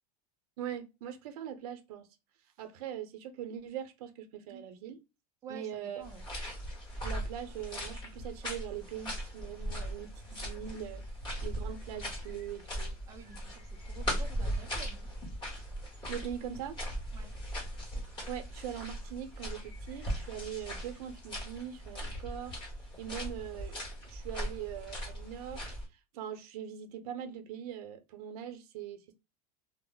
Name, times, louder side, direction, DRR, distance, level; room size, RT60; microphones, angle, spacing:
voice 1, 0.6-2.1 2.6-5.0 5.5-6.0 7.0-11.0 11.4-12.9 16.1-16.8 18.3-22.6 23.0-23.8 24.1-25.7 26.1-29.1, right 9 dB, 65° right, 0.6 m, -41 dB
voice 2, 5.4-6.3 13.1-15.1 17.1-17.3, right 5 dB, 15° right, 0.4 m, -50 dB
sound 1, 6.0-25.9, equal, 20° left, 1.0 m, -39 dB
2.2 x 2.0 x 3.7 m
supercardioid pair, 165°, 20 cm